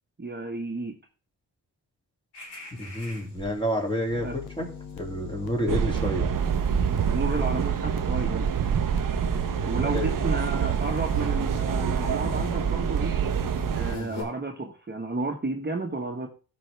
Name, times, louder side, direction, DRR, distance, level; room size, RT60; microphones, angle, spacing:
voice 1, 0.2-0.9 4.2-4.3 7.1-8.5 9.6-13.1 13.7-16.3, right 3 dB, 25° right, 2 dB, 1.4 m, -32 dB
sound 1, 2.3-3.9 4.3-4.5 4.7-14.2, left 2 dB, 80° left, 3.7 m, -45 dB
voice 2, 2.7-6.3 9.7-10.1, equal, 10° left, 1 dB, 2.6 m, -29 dB
sound 2, 4.1-13.8, left 7 dB, 65° left, 1.3 m, -41 dB
sound 3, 5.7-14.0, right 7 dB, 55° right, 0.9 m, -26 dB
13.5 x 5.4 x 3.4 m, 0.36 s
cardioid pair, 70°, 39 cm